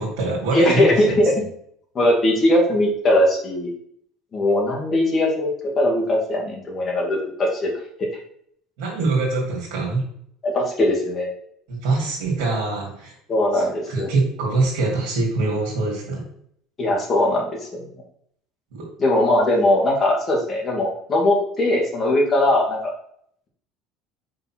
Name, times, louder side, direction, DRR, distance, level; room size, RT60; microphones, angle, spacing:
voice 1, 0.0-1.0 8.8-10.0 11.7-13.1 13.5-16.2 18.7-18.9, right 3 dB, 85° right, -3 dB, 2.2 m, -24 dB
voice 2, 0.5-1.3 1.9-3.7 4.3-7.7 10.4-11.3 13.3-14.1 16.8-17.7 19.0-22.9, left 1 dB, 25° left, -2 dB, 1.9 m, -20 dB
5.3 x 3.9 x 5.9 m, 0.67 s
cardioid pair, 145°, 0 cm